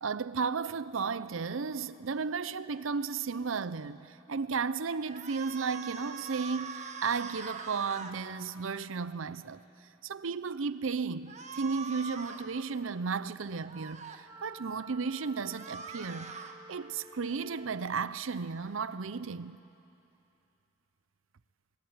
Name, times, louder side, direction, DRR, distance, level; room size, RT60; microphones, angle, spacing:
voice 1, 0.0-9.6 10.0-16.4 16.7-19.6, right 5 dB, 75° right, 0.6 m, -34 dB
sound 1, 5.1-8.1 11.3-12.5 13.6-14.2 15.3-16.6, right 5 dB, 35° right, 1.3 m, -43 dB
Wind instrument woodwind instrument, 14.2-18.0, right 2 dB, 15° right, 0.5 m, -52 dB
24.5 x 21.0 x 9.6 m
head